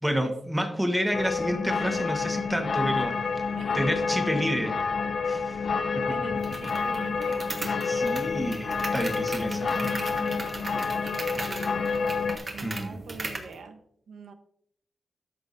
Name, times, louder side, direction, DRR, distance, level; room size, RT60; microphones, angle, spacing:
voice 1, 0.0-4.8 5.2-5.6 5.9-6.1 7.6-9.9 12.6-13.0, equal, 5° right, 5 dB, 1.2 m, -30 dB
sound 1, 1.1-12.4, left 5 dB, 60° left, 0.7 m, -29 dB
voice 2, 6.1-7.5 9.4-12.1 12.5-14.3, right 4 dB, 90° right, 7 dB, 1.0 m, -44 dB
sound 2, 6.4-13.5, right 2 dB, 40° right, 1.4 m, -38 dB
13.5 x 5.9 x 2.7 m, 0.68 s
wide cardioid pair, 135°, 0 cm